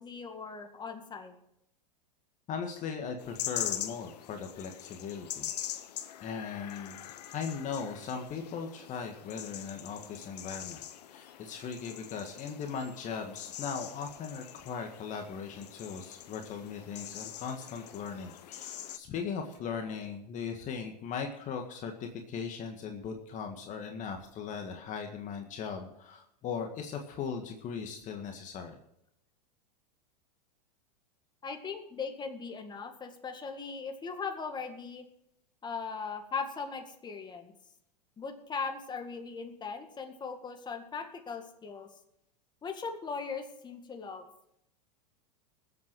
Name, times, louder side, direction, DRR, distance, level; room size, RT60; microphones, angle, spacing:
voice 1, 0.0-1.4 31.4-35.1 35.6-37.5 38.2-41.9 42.6-44.2, left 5 dB, 20° left, 5 dB, 2.0 m, -39 dB
voice 2, 2.5-5.5 6.2-10.8 11.1-28.8, left 6 dB, 35° left, 4 dB, 1.8 m, -38 dB
sound 1, 3.2-19.0, left 11 dB, 70° left, 1.1 m, -43 dB
21.0 x 8.2 x 4.7 m, 0.78 s
hypercardioid pair, 100°, 21 cm